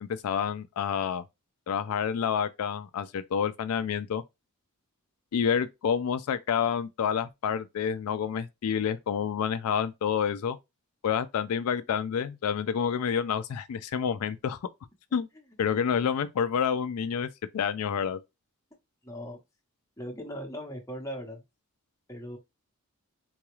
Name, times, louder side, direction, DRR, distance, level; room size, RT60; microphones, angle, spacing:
voice 1, 0.0-1.2 1.7-4.2 5.3-10.6 11.0-14.6 15.1-15.3 15.6-18.2, left 7 dB, 80° left, 0.3 m, -28 dB
voice 2, 19.0-19.4 20.0-21.4 22.1-22.4, equal, 15° left, 0.9 m, -38 dB
3.9 x 2.3 x 3.0 m
head